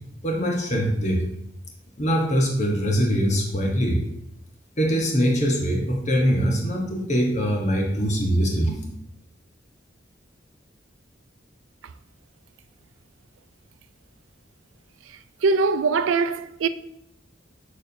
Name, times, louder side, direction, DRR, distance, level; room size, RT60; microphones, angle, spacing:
voice 1, 0.2-1.2 2.0-4.0 4.8-8.8, equal, 35° left, 1.2 m, -22 dB
voice 2, 15.4-16.7, right 4 dB, 85° right, 0.4 m, -21 dB
7.3 x 6.8 x 2.8 m
head